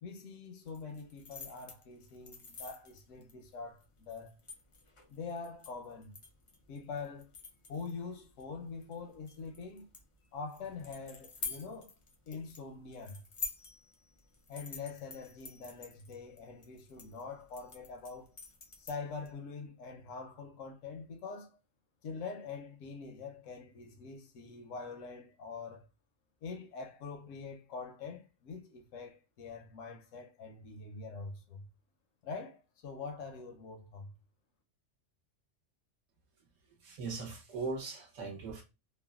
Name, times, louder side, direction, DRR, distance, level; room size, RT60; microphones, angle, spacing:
voice 1, 0.0-4.4 5.1-6.1 6.7-7.3 7.7-9.9 10.3-11.9 12.3-13.2 14.5-18.4 18.8-21.6 22.0-25.9 26.4-31.7 32.2-34.1, left 4 dB, 85° left, 1.0 m, -44 dB
sound 1, 0.6-19.3, left 4 dB, 50° left, 0.3 m, -49 dB
voice 2, 36.8-38.6, right 4 dB, 85° right, 1.2 m, -39 dB
3.1 x 2.1 x 2.3 m
omnidirectional pair, 1.3 m